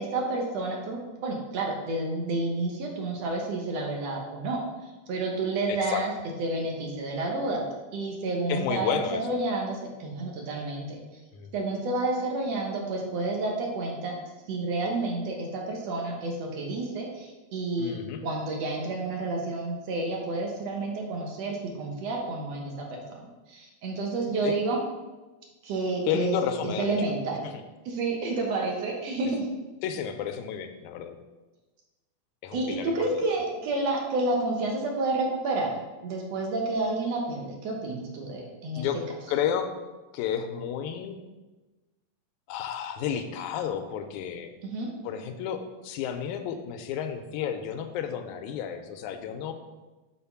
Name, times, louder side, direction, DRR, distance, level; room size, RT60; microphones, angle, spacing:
voice 1, 0.0-4.6 5.1-6.1 6.4-7.7 7.9-11.0 11.5-14.1 14.5-18.0 18.2-24.8 25.6-26.4 26.6-27.4 27.9-29.5 32.5-38.9 44.6-44.9, right 2 dB, 65° right, 0 dB, 2.2 m, -30 dB
voice 2, 5.7-6.0 8.5-9.2 11.3-11.5 17.8-18.2 24.4-24.6 26.1-26.9 27.4-27.5 29.8-31.2 32.4-32.9 38.8-39.0 39.3-39.7 40.1-41.2 42.5-44.5 45.0-49.5, left 8 dB, 90° left, 7 dB, 2.0 m, -31 dB
6.5 x 4.1 x 5.7 m, 1.2 s
omnidirectional pair, 3.4 m